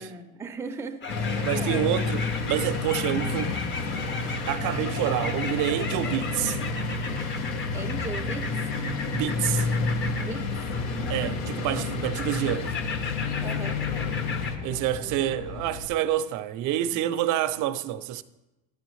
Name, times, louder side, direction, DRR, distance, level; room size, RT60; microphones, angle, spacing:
voice 1, 0.0-2.0 7.7-8.6 10.2-10.5 10.8-11.6 11.9-12.1 12.4-12.6 13.4-13.9 14.6-15.2, right 4 dB, 10° right, 0.5 m, -39 dB
sound 1, 1.0-14.5, left 4 dB, 35° left, 0.8 m, -37 dB
sound 2, 1.1-14.6, left 3 dB, 85° left, 1.0 m, -30 dB
voice 2, 1.4-3.6 4.5-6.6 9.1-9.7 11.1-12.7 14.6-18.2, right 12 dB, 60° right, 0.5 m, -28 dB
Aircraft, 9.1-15.9, left 5 dB, 60° left, 0.8 m, -39 dB
9.6 x 8.9 x 3.1 m
supercardioid pair, 105°, 34 cm